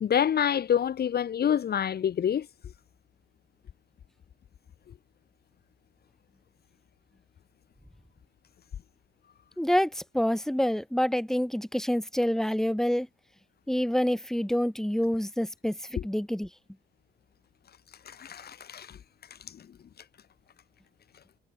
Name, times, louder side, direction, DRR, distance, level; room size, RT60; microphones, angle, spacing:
voice 1, 0.0-2.5 15.9-16.0 18.1-19.0, left 9 dB, 50° left, 1.3 m, -27 dB
voice 2, 9.6-13.1 13.7-16.5, equal, ahead, 2.6 m, -27 dB
cardioid pair, 90°, 20 cm